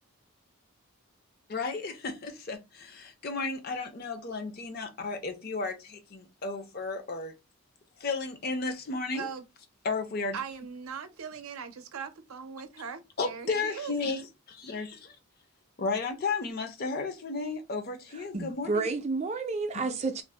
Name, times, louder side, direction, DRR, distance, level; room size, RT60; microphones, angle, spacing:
voice 1, 1.5-7.3 8.0-9.3 9.8-10.4 13.2-15.2 15.8-18.9, left 3 dB, 45° left, 0.5 m, -33 dB
voice 2, 10.3-13.9, right 6 dB, 80° right, 0.5 m, -40 dB
voice 3, 18.3-20.2, right 3 dB, 30° right, 0.4 m, -30 dB
2.5 x 2.1 x 3.2 m
head